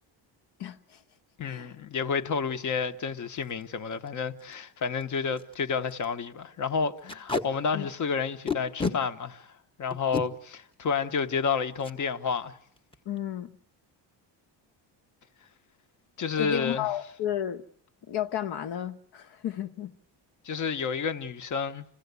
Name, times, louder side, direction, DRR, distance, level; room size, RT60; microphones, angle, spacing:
voice 1, 0.6-1.0 1.4-1.7 7.7-7.9 13.0-13.5 16.4-17.6 18.1-19.9, left 10 dB, 65° left, 1.3 m, -32 dB
voice 2, 1.4-9.5 9.8-12.5 16.2-16.9 20.4-21.8, left 5 dB, 45° left, 1.1 m, -30 dB
Packing tape duct tape, 3.4-3.6 4.1-4.2 4.4-4.5 5.0-5.1 5.4-5.5 5.9-6.1 7.1-7.4 8.5-9.0 9.9-10.2 11.8-12.0 12.3-12.5 12.8-13.2, left 4 dB, 10° left, 1.1 m, -30 dB
28.0 x 16.0 x 8.2 m
cardioid pair, 170°, 43 cm